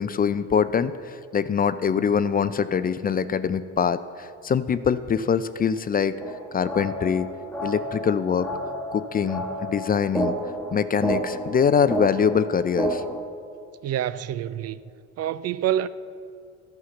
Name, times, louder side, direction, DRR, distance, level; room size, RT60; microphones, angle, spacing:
voice 1, 0.0-6.2 6.5-7.3 7.6-8.5 8.9-10.3 10.7-13.0, left 7 dB, 25° left, 0.4 m, -23 dB
sound 1, 6.2-13.2, right 1 dB, 5° left, 1.4 m, -31 dB
voice 2, 13.8-14.8 15.2-15.9, right 11 dB, 50° right, 0.4 m, -26 dB
11.5 x 5.7 x 6.9 m
hypercardioid pair, 70°, 33 cm